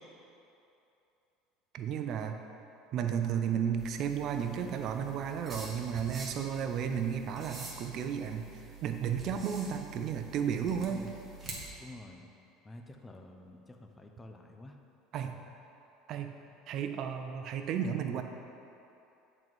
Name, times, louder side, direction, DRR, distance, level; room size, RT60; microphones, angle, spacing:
voice 1, 1.7-2.4 2.9-11.0 15.1-15.4 16.1-16.3 16.7-18.2, right 8 dB, 50° right, 6 dB, 0.5 m, -33 dB
sound 1, 3.8-11.7, right 3 dB, 25° right, 1.2 m, -47 dB
voice 2, 11.8-12.3 12.6-14.8, left 1 dB, 15° left, 4 dB, 0.5 m, -49 dB
7.3 x 4.0 x 4.6 m, 2.8 s
supercardioid pair, 125°, 0 cm